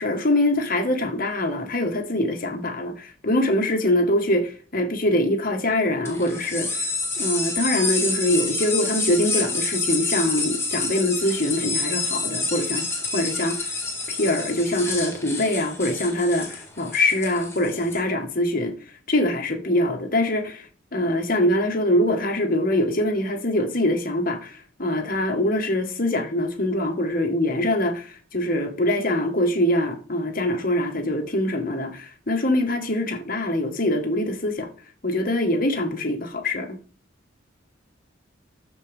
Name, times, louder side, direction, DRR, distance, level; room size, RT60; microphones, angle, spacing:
voice 1, 0.0-6.9 7.2-12.8 13.1-13.7 14.1-18.7 19.1-20.7 20.9-34.7 35.0-36.8, left 1 dB, 45° left, 1.5 m, -23 dB
sound 1, 6.0-18.0, left 3 dB, 15° left, 1.9 m, -28 dB
13.5 x 4.5 x 3.5 m
head